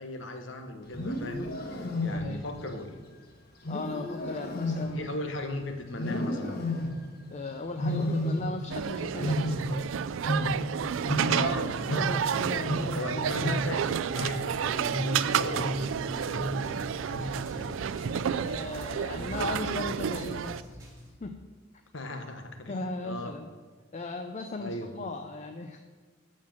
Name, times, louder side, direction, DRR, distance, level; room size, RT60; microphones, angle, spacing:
voice 1, 0.0-3.0 4.9-6.9 11.2-18.0 21.9-23.4 24.6-24.9, left 2 dB, 70° left, 6 dB, 1.1 m, -38 dB
Wild animals, 0.8-2.6 3.6-5.5 6.0-7.2 7.8-8.8 9.1-11.6 11.8-16.8 17.1-17.6 18.0-18.4 19.2-19.6, left 1 dB, 55° left, 1.2 m, -32 dB
voice 2, 2.1-2.4 3.7-5.1 7.3-9.9 10.2-10.6 12.0-13.3 18.4-20.8 21.2-21.3 22.7-23.5 23.9-25.8, left 2 dB, 40° left, 6 dB, 0.5 m, -37 dB
sound 1, 8.7-20.6, right 8 dB, 90° right, 0.4 m, -31 dB
sound 2, 15.8-21.1, right 1 dB, 20° right, 2.1 m, -48 dB
12.0 x 4.5 x 7.5 m, 1.4 s
head